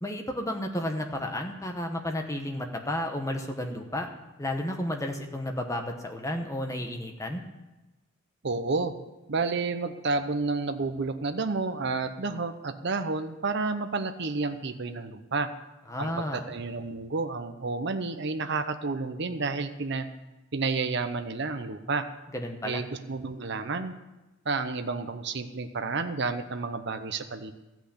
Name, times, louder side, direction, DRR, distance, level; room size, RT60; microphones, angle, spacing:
voice 1, 0.0-4.1 4.4-7.4 15.9-16.4 22.3-22.8, left 1 dB, 15° left, 4 dB, 1.1 m, -32 dB
voice 2, 8.4-9.0 9.3-15.5 16.0-20.1 20.5-22.1 22.6-24.0 24.4-27.5, right 3 dB, 55° right, 8 dB, 0.7 m, -30 dB
13.5 x 6.0 x 8.5 m, 1.1 s
head